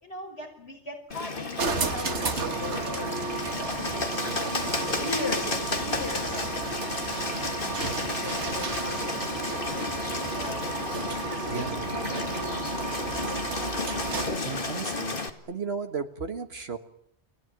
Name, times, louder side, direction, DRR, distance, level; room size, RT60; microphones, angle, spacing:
voice 1, 0.0-4.2 4.9-6.6 7.6-10.2 11.1-11.7 12.1-13.3, left 2 dB, 70° left, 0 dB, 5.8 m, -40 dB
Bird, 1.1-15.3, left 3 dB, 50° left, 2.3 m, -32 dB
sound 1, 1.6-14.5, right 4 dB, 85° right, 2.0 m, -33 dB
voice 2, 11.5-12.0 14.4-15.2 15.5-16.8, right 5 dB, 65° right, 7 dB, 1.8 m, -34 dB
30.0 x 21.5 x 9.2 m, 0.75 s
omnidirectional pair, 1.1 m